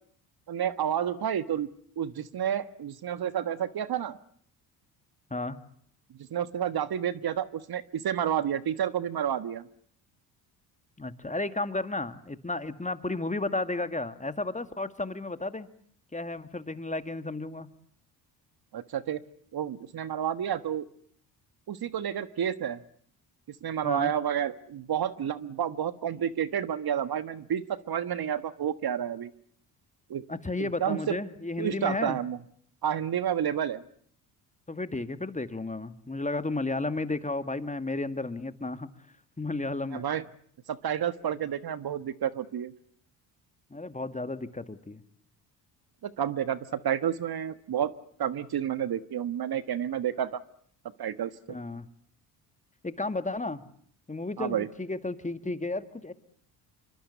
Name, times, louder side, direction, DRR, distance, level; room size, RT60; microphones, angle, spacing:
voice 1, 0.5-1.7 2.0-4.2 6.3-9.7 18.7-19.2 19.5-20.9 21.7-22.8 23.6-29.3 30.1-30.3 30.8-31.1 31.6-32.4 32.8-33.8 39.9-40.2 40.7-42.7 46.0-47.9 48.2-50.4 51.0-51.3 54.4-54.7, right 9 dB, 50° right, 14 dB, 1.5 m, -30 dB
voice 2, 11.0-15.7 16.1-17.7 23.8-24.1 30.3-32.2 34.7-38.9 39.4-40.1 43.7-45.0 51.5-51.9 52.8-53.6 54.1-56.1, left 2 dB, 15° left, 11 dB, 2.1 m, -33 dB
26.5 x 24.5 x 8.3 m, 0.62 s
hypercardioid pair, 60°, 49 cm